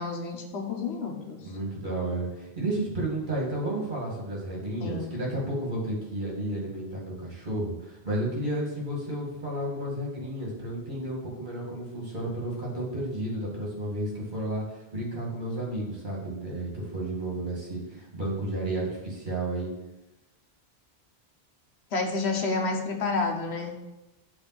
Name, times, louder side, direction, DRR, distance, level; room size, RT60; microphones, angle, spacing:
voice 1, 0.0-1.4 4.8-5.1 21.9-23.8, left 3 dB, 85° left, 3 dB, 1.2 m, -30 dB
voice 2, 1.4-19.7, right 1 dB, 50° right, -4 dB, 2.2 m, -32 dB
6.9 x 3.4 x 6.0 m, 0.96 s
omnidirectional pair, 1.1 m